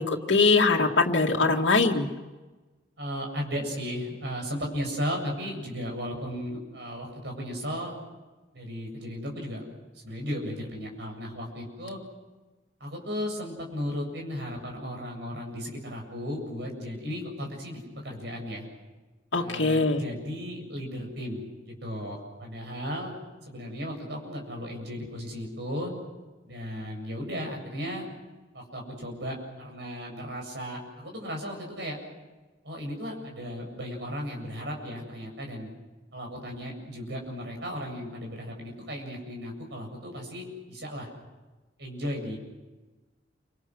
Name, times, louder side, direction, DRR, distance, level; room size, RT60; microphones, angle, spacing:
voice 1, 0.0-2.1 19.3-20.1, left 3 dB, 85° left, 0 dB, 2.1 m, -22 dB
voice 2, 3.0-7.9 8.5-9.6 10.0-12.0 12.8-18.7 19.3-23.1 23.5-25.9 26.5-28.1 28.5-32.0 32.6-35.7 36.1-41.1 41.8-42.4, equal, 65° right, 1 dB, 7.7 m, -35 dB
29.5 x 26.0 x 6.4 m, 1.2 s
head